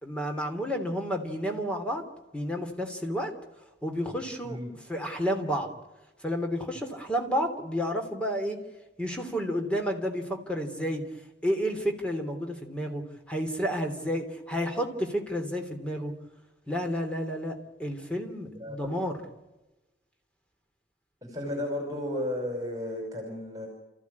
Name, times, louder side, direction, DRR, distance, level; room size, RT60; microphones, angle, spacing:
voice 1, 0.0-2.1 2.3-3.3 3.8-4.6 4.9-5.7 6.2-8.6 9.0-11.1 11.4-16.1 16.7-19.2, equal, 5° left, 4 dB, 3.2 m, -31 dB
voice 2, 18.4-18.8 21.2-23.7, left 1 dB, 20° right, 2 dB, 5.4 m, -33 dB
29.5 x 15.0 x 9.6 m, 1.1 s
head